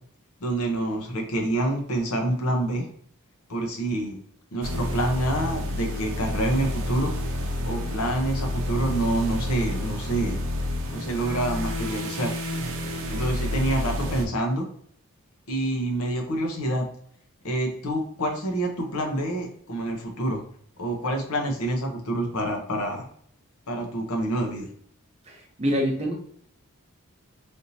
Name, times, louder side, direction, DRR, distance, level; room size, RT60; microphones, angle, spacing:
voice 1, 0.4-2.9 3.5-4.2 4.5-7.1 7.6-10.4 10.9-12.3 13.1-14.6 15.5-16.9 17.4-20.4 20.8-23.0 23.7-24.7, right 1 dB, 85° left, 2 dB, 0.9 m, -27 dB
sound 1, 4.6-14.3, left 1 dB, 65° right, 0.6 m, -29 dB
voice 2, 25.3-26.1, equal, 30° right, 0 dB, 0.8 m, -26 dB
3.5 x 2.8 x 2.7 m, 0.63 s
head